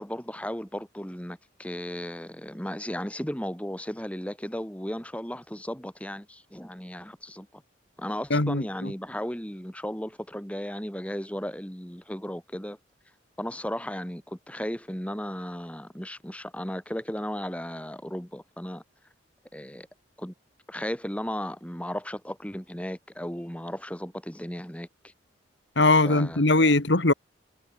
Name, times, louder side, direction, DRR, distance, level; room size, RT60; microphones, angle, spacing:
voice 1, 0.0-7.6 8.0-12.8 13.4-18.8 19.5-19.9 20.2-20.3 20.7-24.9 26.0-26.7, equal, 5° left, 3.1 m, -35 dB
voice 2, 8.3-8.9 25.8-27.1, left 2 dB, 65° left, 2.1 m, -21 dB
head